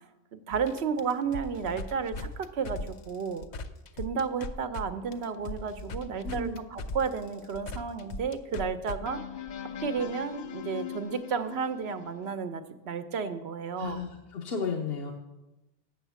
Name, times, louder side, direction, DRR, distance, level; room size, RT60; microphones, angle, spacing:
voice 1, 0.3-3.5 4.0-9.2 9.8-14.0, right 6 dB, 75° right, 9 dB, 0.9 m, -32 dB
sound 1, 0.5-4.8 5.1-12.3, left 4 dB, 50° left, 0.6 m, -39 dB
voice 2, 6.2-6.7 13.7-15.1, left 4 dB, 70° left, 2 dB, 1.0 m, -34 dB
8.0 x 7.2 x 6.9 m, 1.0 s
omnidirectional pair, 1.1 m